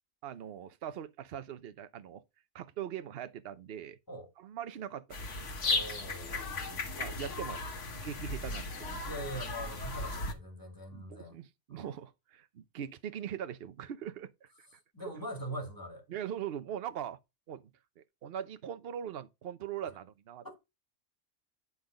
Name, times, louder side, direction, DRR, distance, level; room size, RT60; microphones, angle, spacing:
voice 1, 0.2-2.2 2.5-4.0 4.4-5.4 6.6-7.6 7.9-9.2 10.9-14.7 16.1-17.2 17.5-17.6 18.0-20.6, right 9 dB, 60° right, 0.9 m, -41 dB
sound 1, 5.1-10.3, left 3 dB, 80° left, 1.7 m, -36 dB
voice 2, 5.6-6.5 9.0-11.4 11.7-11.9 14.9-16.0 20.4-20.6, right 1 dB, 15° left, 2.1 m, -42 dB
10.5 x 3.9 x 5.0 m
omnidirectional pair, 1.2 m